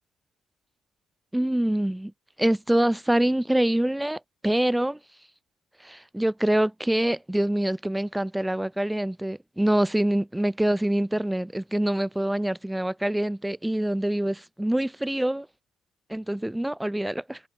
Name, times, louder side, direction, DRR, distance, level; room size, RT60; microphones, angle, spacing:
voice 1, 1.3-2.1 2.4-5.0 5.8-15.5 16.1-17.4, right 1 dB, 5° right, 2.4 m, -25 dB
cardioid pair, 90°, 0 cm